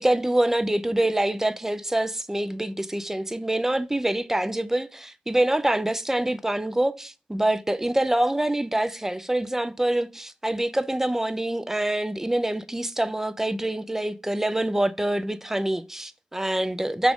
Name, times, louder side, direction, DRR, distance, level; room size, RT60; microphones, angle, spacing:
voice 1, 0.0-17.1, right 1 dB, 10° right, 0.4 m, -25 dB
6.0 x 2.4 x 3.5 m
wide cardioid pair, 100°, 3 cm